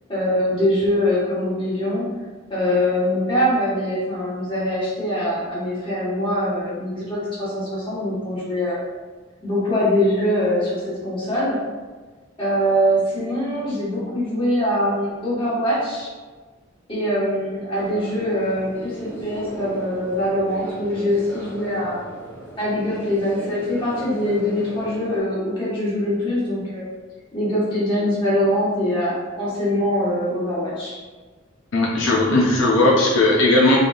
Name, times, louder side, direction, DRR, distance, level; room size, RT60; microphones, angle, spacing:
voice 1, 0.1-2.1 2.5-8.8 9.4-11.6 12.4-16.1 16.9-22.0 22.6-26.9 27.3-30.9, equal, 25° left, -8 dB, 1.4 m, -23 dB
sound 1, 17.7-25.2, right 2 dB, 10° left, 0.8 m, -37 dB
voice 2, 31.7-33.8, left 2 dB, 75° left, -3 dB, 0.5 m, -17 dB
3.7 x 3.5 x 2.5 m, 1.3 s
head